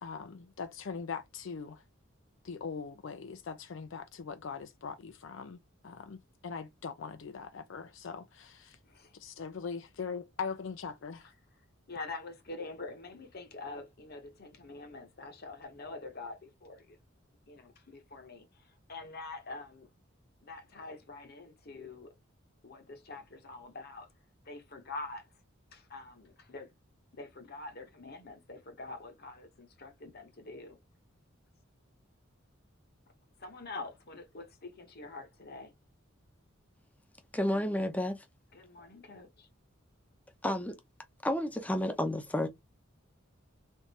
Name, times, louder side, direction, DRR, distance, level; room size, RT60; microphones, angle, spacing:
voice 1, 0.0-1.8 2.4-8.8 9.1-11.3, left 5 dB, 65° left, 0.5 m, -41 dB
voice 2, 11.9-17.0 17.5-19.9 20.4-22.1 22.6-24.1 24.4-25.3 25.7-26.7 27.1-30.8 33.4-35.7 38.5-39.5, left 3 dB, 50° left, 1.0 m, -45 dB
voice 3, 37.3-38.2 40.4-40.7 41.2-42.5, left 1 dB, 5° left, 0.6 m, -31 dB
3.6 x 2.5 x 4.1 m
head